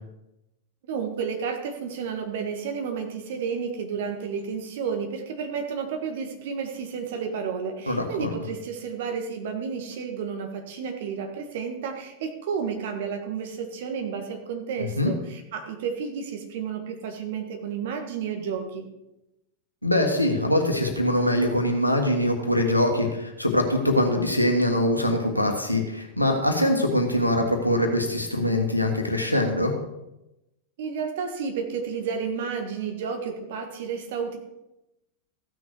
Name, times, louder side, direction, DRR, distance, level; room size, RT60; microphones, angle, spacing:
voice 1, 0.8-18.9 30.8-34.4, right 6 dB, 55° right, 4 dB, 1.6 m, -31 dB
voice 2, 7.9-8.3 14.8-15.1 19.8-29.7, left 1 dB, 90° left, 2 dB, 1.5 m, -23 dB
15.0 x 6.2 x 4.7 m, 0.94 s
figure-of-eight pair, 90°, 0 cm